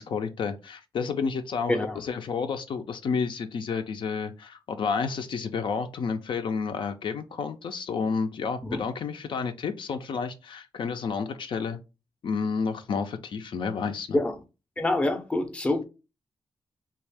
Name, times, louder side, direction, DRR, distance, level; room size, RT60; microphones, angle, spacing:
voice 1, 0.0-11.8 12.2-14.2, left 5 dB, 70° left, 0.5 m, -30 dB
voice 2, 1.7-2.0 8.6-8.9 14.1-14.4 14.8-15.8, left 2 dB, 15° left, 0.6 m, -26 dB
3.4 x 2.4 x 3.4 m
wide cardioid pair, 135°, 9 cm